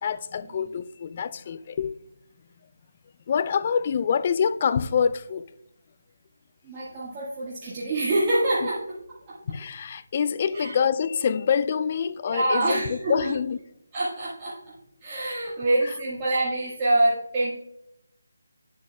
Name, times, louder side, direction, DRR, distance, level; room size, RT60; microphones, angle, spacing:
voice 1, 0.0-1.9 3.3-5.5 9.5-13.6 15.8-15.9, left 7 dB, 35° left, 0.3 m, -26 dB
voice 2, 6.6-8.8 9.3-9.4 10.5-10.7 12.3-13.3 13.9-14.6 15.0-17.5, right 2 dB, 25° right, 1.5 m, -25 dB
9.6 x 7.4 x 2.3 m
figure-of-eight pair, 160°, 0 cm